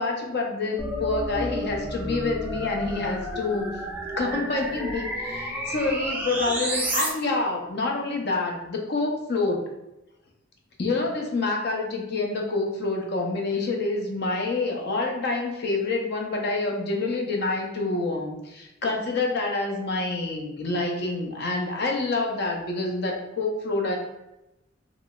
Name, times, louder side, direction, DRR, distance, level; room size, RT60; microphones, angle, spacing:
voice 1, 0.0-3.7 4.2-9.6 10.8-24.0, left 3 dB, 55° left, 1 dB, 0.6 m, -27 dB
sound 1, 0.8-7.1, right 1 dB, 10° right, 0.5 m, -31 dB
3.1 x 2.9 x 2.3 m, 0.92 s
head